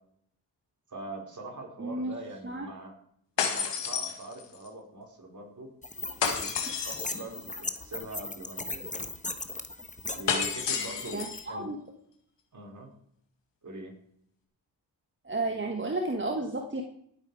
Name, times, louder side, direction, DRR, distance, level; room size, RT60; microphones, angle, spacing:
voice 1, 0.9-2.9 3.4-5.7 6.3-6.5 6.8-8.8 10.1-11.7 12.5-12.9 13.6-13.9, right 2 dB, 45° right, 0 dB, 4.6 m, -42 dB
voice 2, 1.8-2.1 2.4-2.7 11.1-11.8 15.2-16.8, right 2 dB, 30° right, 3 dB, 1.6 m, -32 dB
sound 1, 3.4-4.7 6.2-7.2 10.3-11.5, left 6 dB, 85° left, 1.9 m, -30 dB
sound 2, 5.8-11.4, left 2 dB, 15° left, 1.4 m, -38 dB
18.0 x 8.2 x 4.9 m, 0.71 s
cardioid pair, 55°, 42 cm